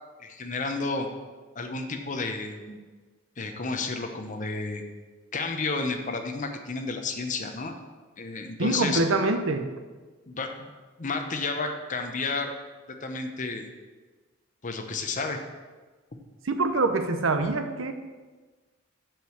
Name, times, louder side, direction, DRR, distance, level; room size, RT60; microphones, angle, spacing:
voice 1, 0.2-1.1 1.5-2.8 3.4-4.8 5.3-7.7 8.2-9.0 10.3-10.7 11.0-12.5 13.0-13.7 14.6-15.4, left 3 dB, 40° left, 5 dB, 0.9 m, -31 dB
voice 2, 8.6-9.7 16.4-17.9, right 3 dB, 80° right, 7 dB, 0.8 m, -25 dB
7.5 x 4.8 x 7.0 m, 1.3 s
head